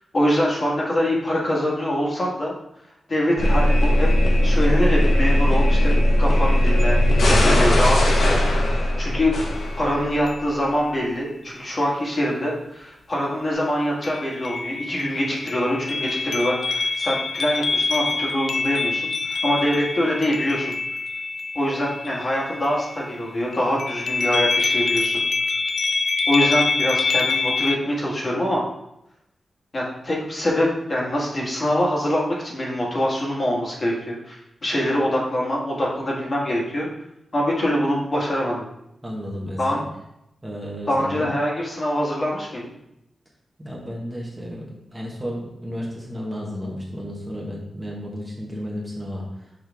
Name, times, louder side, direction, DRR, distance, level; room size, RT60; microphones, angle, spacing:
voice 1, 0.1-2.5 3.1-4.1 4.4-5.9 6.2-7.0 7.3-9.3 9.8-20.7 21.5-25.2 26.3-28.6 29.7-36.9 37.3-38.6 39.6-39.8 40.9-42.7, equal, 35° left, -3 dB, 1.5 m, -24 dB
sound 1, 3.4-10.2, left 1 dB, 80° left, 1.1 m, -18 dB
Shining bells, 9.5-9.6 10.3-10.8 14.0-23.2 23.5-27.8, left 4 dB, 55° left, 0.4 m, -25 dB
voice 2, 39.0-39.8 40.4-41.3 43.6-49.2, equal, 15° right, -3 dB, 1.2 m, -33 dB
6.2 x 4.5 x 3.5 m, 0.81 s
wide cardioid pair, 140°, 0 cm